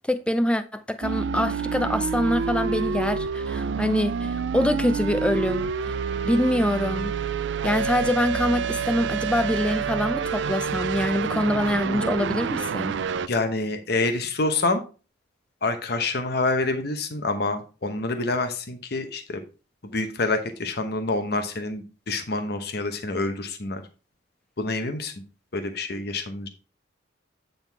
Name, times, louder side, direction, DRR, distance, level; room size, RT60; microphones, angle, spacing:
voice 1, 0.1-5.9 6.2-7.2 7.6-12.9, left 1 dB, 5° left, 0.5 m, -25 dB
sound 1, 1.0-13.3, right 6 dB, 65° right, 0.4 m, -28 dB
voice 2, 13.3-14.8 15.6-19.4 19.8-23.8 24.6-25.1 25.5-26.5, left 3 dB, 55° left, 0.9 m, -27 dB
9.1 x 3.9 x 4.6 m
head